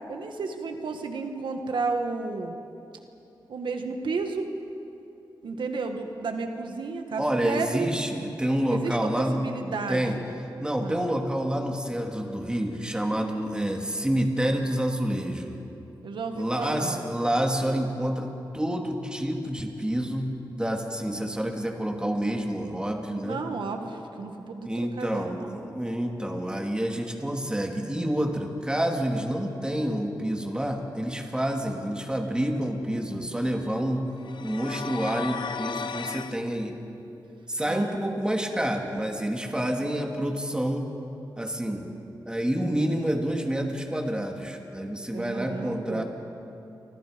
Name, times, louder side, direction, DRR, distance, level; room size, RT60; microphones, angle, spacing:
voice 1, 0.1-2.6 3.5-4.5 5.4-7.9 8.7-10.3 10.8-11.0 16.0-17.0 23.2-25.5 37.6-38.0 45.1-46.0, right 4 dB, 90° right, 5 dB, 1.7 m, -32 dB
voice 2, 7.2-9.4 9.9-10.2 10.6-15.5 16.3-23.4 24.6-34.1 34.4-36.7 37.5-40.9 41.4-41.9 42.3-46.0, right 1 dB, 10° right, 2 dB, 2.7 m, -28 dB
sound 1, 34.2-36.4, left 6 dB, 75° left, 0.9 m, -35 dB
30.0 x 25.0 x 5.3 m, 2.8 s
wide cardioid pair, 90°, 8 cm